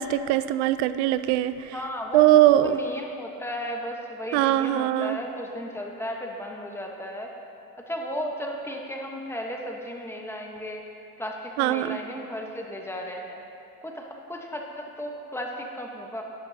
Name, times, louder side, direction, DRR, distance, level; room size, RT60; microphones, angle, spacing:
voice 1, 0.0-1.7 2.1-2.8 4.3-5.2 11.6-12.0, right 14 dB, 85° right, 13 dB, 0.5 m, -21 dB
voice 2, 1.7-7.3 7.9-10.8 11.2-13.4 13.8-16.2, equal, 5° left, 0 dB, 1.0 m, -35 dB
12.0 x 11.0 x 2.7 m, 2.6 s
cardioid pair, 115°, 36 cm